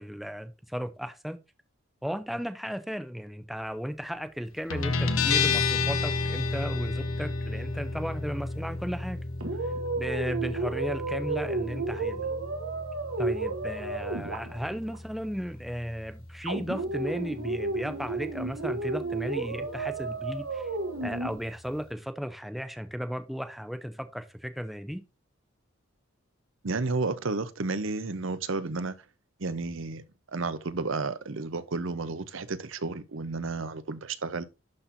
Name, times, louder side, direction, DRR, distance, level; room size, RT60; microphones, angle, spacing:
voice 1, 0.0-1.4 2.0-9.2 9.5-12.3 13.2-20.7 21.0-25.0, equal, ahead, 0.6 m, -35 dB
Guitar, 4.7-21.9, left 4 dB, 75° left, 1.1 m, -33 dB
sound 1, 9.4-15.0 16.4-21.3, right 3 dB, 80° right, 2.0 m, -32 dB
voice 2, 26.6-28.9 29.4-30.0 30.3-34.4, right 3 dB, 65° right, 0.8 m, -32 dB
11.5 x 4.3 x 2.7 m
head